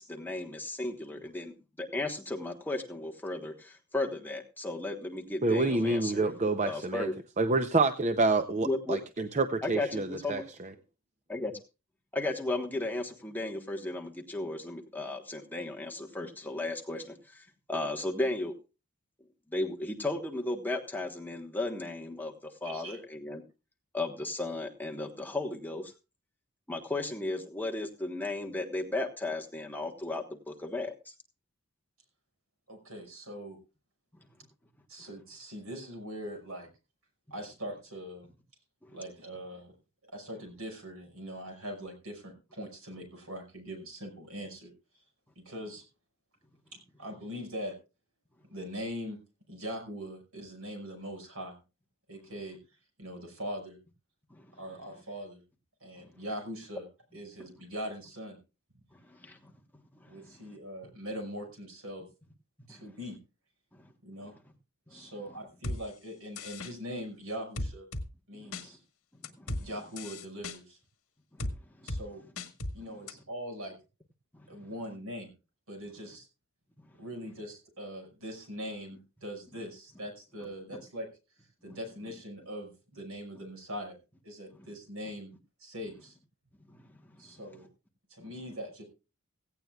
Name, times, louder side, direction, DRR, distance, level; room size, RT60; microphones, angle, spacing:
voice 1, 0.0-6.3 6.6-7.1 8.6-9.0 9.6-10.5 11.3-11.5 12.1-18.5 19.5-23.4 23.9-25.9 26.7-31.1 38.9-39.0 54.3-54.4 59.1-59.4 62.7-62.8 63.7-63.8 64.9-65.0 68.3-68.7 69.4-69.7 71.8-71.9 81.7-81.8 86.7-86.8, left 2 dB, 10° left, 1 dB, 1.2 m, -35 dB
voice 2, 5.4-7.1 7.4-10.7, right 3 dB, 30° right, 8 dB, 0.6 m, -28 dB
voice 3, 22.6-23.0 32.7-33.6 34.9-36.7 37.3-38.3 38.9-39.7 40.0-45.0 45.4-45.8 46.7-47.7 48.5-49.2 49.5-51.6 52.1-52.6 53.0-53.8 54.5-55.4 55.8-56.9 57.1-58.4 60.1-62.0 62.7-63.2 64.0-64.3 64.9-67.9 68.3-68.8 69.6-70.8 71.8-72.2 72.7-73.7 74.5-75.3 75.7-76.3 77.0-81.1 81.6-84.0 84.2-85.3 85.6-86.2 87.2-87.7 88.1-88.8, equal, 70° right, 4 dB, 5.7 m, -41 dB
sound 1, 65.6-65.8 66.4-66.7 67.6-68.1 68.5-68.6 69.2-69.6 70.0-70.6 71.4-71.5 71.9-72.0 72.4-72.7 73.1-73.2, left 1 dB, 70° left, 1.5 m, -35 dB
17.0 x 16.0 x 2.4 m, 0.31 s
head